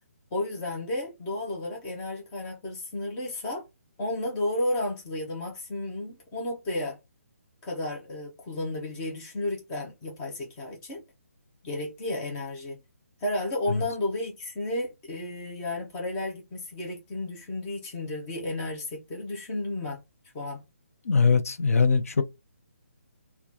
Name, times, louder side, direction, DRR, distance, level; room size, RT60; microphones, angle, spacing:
voice 1, 0.3-3.6 4.0-7.0 7.6-11.0 11.6-12.8 13.2-20.0 20.3-20.6, left 1 dB, 10° left, 0.5 m, -32 dB
voice 2, 21.0-22.2, left 5 dB, 70° left, 0.5 m, -21 dB
4.5 x 2.3 x 2.7 m
hypercardioid pair, 175°, 8 cm